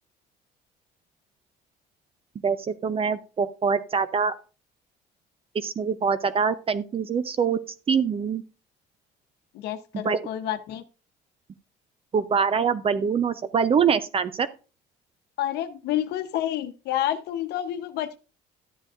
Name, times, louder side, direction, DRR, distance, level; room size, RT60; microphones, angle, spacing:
voice 1, 2.4-4.3 5.5-7.6 7.9-8.4 10.0-10.2 12.1-14.5, right 6 dB, 35° right, 13 dB, 0.6 m, -24 dB
voice 2, 9.5-10.8 15.4-18.2, left 12 dB, 80° left, 9 dB, 0.9 m, -29 dB
12.5 x 7.4 x 2.5 m, 0.34 s
cardioid pair, 110°, 17 cm